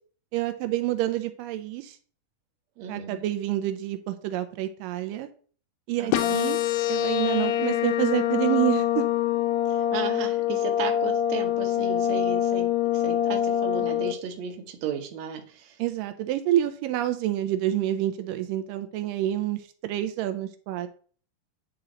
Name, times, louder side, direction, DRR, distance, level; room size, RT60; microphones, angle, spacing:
voice 1, 0.3-2.0 2.9-5.3 5.9-6.6 6.9-9.1 15.8-20.9, right 13 dB, 85° right, 9 dB, 2.3 m, -28 dB
voice 2, 2.8-3.2 6.0-6.4 9.7-12.7 12.9-15.8, right 7 dB, 65° right, 4 dB, 2.1 m, -35 dB
sound 1, 6.1-14.1, left 11 dB, 75° left, 2.2 m, -25 dB
8.9 x 4.3 x 3.8 m, 0.43 s
omnidirectional pair, 3.8 m